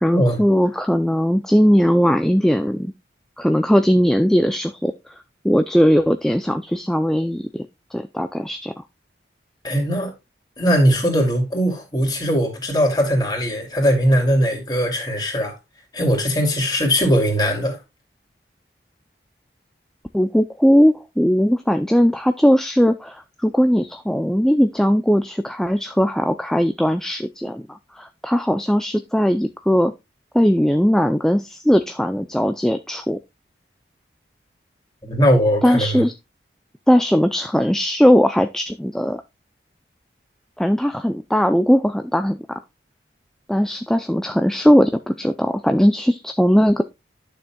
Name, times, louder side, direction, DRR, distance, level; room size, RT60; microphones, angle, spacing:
voice 1, 0.0-2.9 3.4-5.1 5.4-7.7 7.9-8.8 20.1-29.9 30.3-33.2 35.6-36.1 36.9-39.2 40.6-42.6 43.5-46.8, equal, 5° left, 0.3 m, -19 dB
voice 2, 9.6-10.1 10.6-15.6 15.9-17.8 35.1-36.0, equal, 20° left, 2.6 m, -19 dB
11.5 x 6.8 x 2.3 m
head